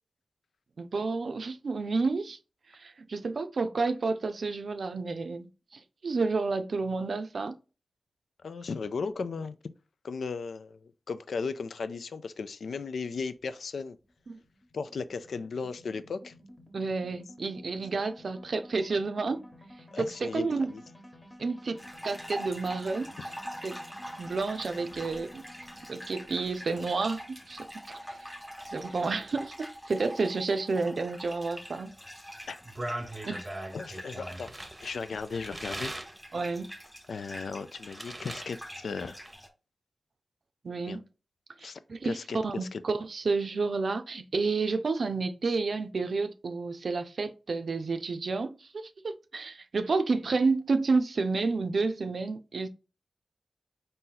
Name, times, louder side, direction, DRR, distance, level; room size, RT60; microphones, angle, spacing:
voice 1, 0.8-2.4 2.7-7.6 14.3-14.4 16.7-19.4 20.0-20.7 21.4-23.1 23.6-23.8 24.2-25.4 25.9-27.7 28.1-28.2 28.7-31.9 33.2-33.4 36.3-36.7 40.6-41.0 41.6-52.7, right 4 dB, 65° right, 0.5 m, -30 dB
voice 2, 8.4-9.6 10.0-14.0 14.7-16.3 19.9-20.8 32.5-32.6 33.7-34.5 34.8-35.9 37.1-39.2 40.9-41.0 41.6-42.8, left 4 dB, 85° left, 0.4 m, -36 dB
sound 1, 13.4-29.7, equal, 25° left, 1.2 m, -53 dB
sound 2, 21.8-39.5, equal, 5° left, 0.9 m, -45 dB
sound 3, 32.5-36.2 36.7-38.5 38.8-39.3, right 1 dB, 20° right, 0.8 m, -40 dB
4.2 x 2.6 x 3.8 m
wide cardioid pair, 80°, 0 cm